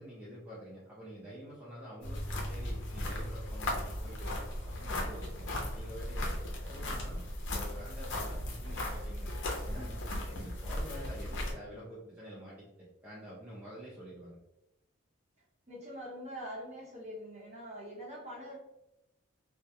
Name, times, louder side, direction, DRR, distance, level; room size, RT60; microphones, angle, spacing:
voice 1, 0.0-2.2 2.5-6.3 6.6-9.3 9.6-9.9 10.3-14.4, equal, 10° right, -9 dB, 0.4 m, -48 dB
sound 1, 2.0-11.5, left 1 dB, 55° left, 0.5 m, -37 dB
voice 2, 9.6-10.0 15.7-18.6, equal, 30° right, -6 dB, 0.8 m, -44 dB
2.2 x 2.2 x 2.7 m, 0.91 s
head